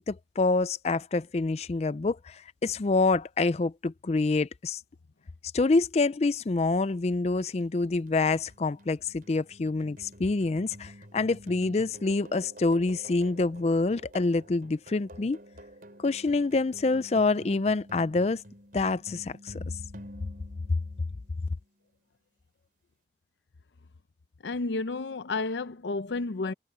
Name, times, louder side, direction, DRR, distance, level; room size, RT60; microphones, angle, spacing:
voice 1, 0.0-4.8 5.5-15.4 16.0-18.4 18.7-19.5, left 3 dB, 35° left, 0.4 m, -26 dB
sound 1, 7.4-21.6, equal, 50° right, 5.0 m, -50 dB
voice 2, 24.4-26.5, left 3 dB, 75° left, 0.6 m, -31 dB
head